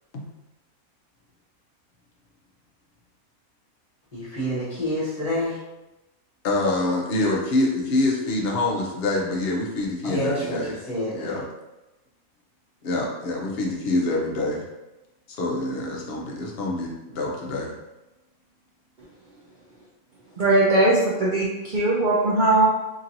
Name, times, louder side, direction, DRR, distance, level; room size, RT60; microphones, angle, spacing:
voice 1, 4.1-5.6 10.0-11.4, equal, 30° left, -9 dB, 0.9 m, -28 dB
voice 2, 6.4-10.7 11.1-11.4 12.8-14.6 15.3-17.7, left 2 dB, 55° left, -1 dB, 0.7 m, -26 dB
voice 3, 20.4-22.7, right 2 dB, 80° right, -6 dB, 0.4 m, -20 dB
2.9 x 2.7 x 2.6 m, 1.0 s
omnidirectional pair, 1.5 m